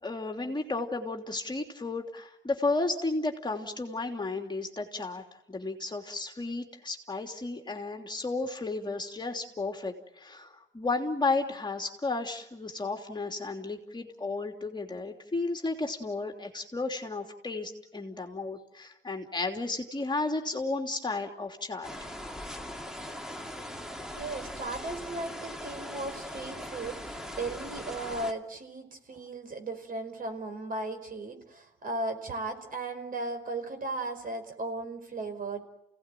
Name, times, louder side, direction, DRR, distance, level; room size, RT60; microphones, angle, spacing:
voice 1, 0.0-5.2 5.5-22.1, left 3 dB, 20° left, 3 dB, 3.1 m, -33 dB
sound 1, 21.8-28.3, left 1 dB, 5° right, 2.4 m, -40 dB
voice 2, 24.1-35.6, right 2 dB, 45° right, 7 dB, 4.9 m, -36 dB
29.0 x 18.0 x 9.2 m, 0.89 s
cardioid pair, 90°, 20 cm